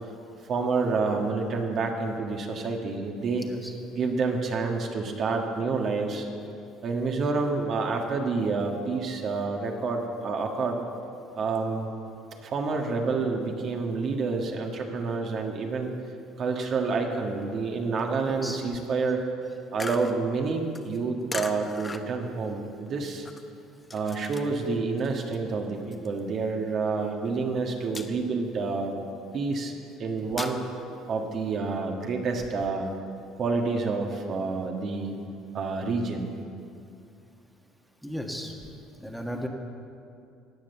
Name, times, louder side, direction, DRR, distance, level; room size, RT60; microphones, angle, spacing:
voice 1, 0.4-3.5 3.9-6.3 6.8-10.8 11.3-11.9 12.4-15.9 16.4-19.2 19.7-23.3 23.9-28.9 29.3-29.7 30.0-30.6 31.1-32.9 33.4-35.2 35.5-36.3, right 4 dB, 50° right, 1 dB, 1.7 m, -28 dB
voice 2, 3.4-3.7 18.2-18.6 38.0-38.5 39.0-39.5, equal, ahead, 1 dB, 1.6 m, -35 dB
sound 1, 19.8-24.7 25.0-26.9 27.2-27.5 27.8-28.5 28.9-30.6, left 3 dB, 20° left, 0.9 m, -39 dB
15.0 x 9.0 x 7.0 m, 2.5 s
supercardioid pair, 95°, 0 cm